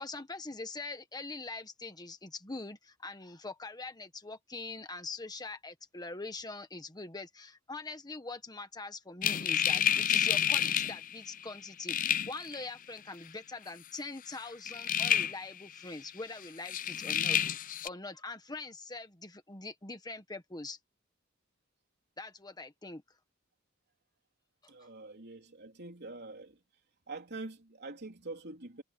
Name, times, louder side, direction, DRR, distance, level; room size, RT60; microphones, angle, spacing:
voice 1, 0.0-20.8 22.2-23.0 24.6-24.9, left 3 dB, 20° left, 1.4 m, -43 dB
sound 1, 9.2-11.6 11.9-12.6 13.0-13.1 14.7-15.5 15.8-15.9 16.7-17.9, left 9 dB, 40° left, 0.6 m, -29 dB
voice 2, 24.7-26.6 27.1-28.8, right 3 dB, 55° right, 3.5 m, -45 dB
head